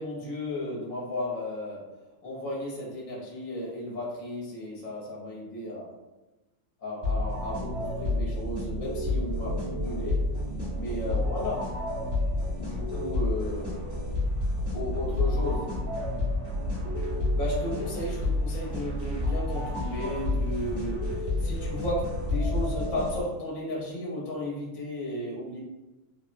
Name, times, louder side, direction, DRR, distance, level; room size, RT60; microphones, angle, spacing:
voice 1, 0.0-1.9 2.2-5.9 6.8-10.2 10.7-11.7 12.6-13.8 14.7-15.7 17.3-25.6, left 1 dB, 80° left, -5 dB, 1.3 m, -34 dB
sound 1, 7.0-23.5, left 2 dB, 45° right, 1.4 m, -30 dB
sound 2, 9.0-22.8, left 2 dB, 65° right, 0.9 m, -37 dB
3.3 x 2.0 x 2.5 m, 1.1 s
omnidirectional pair, 1.4 m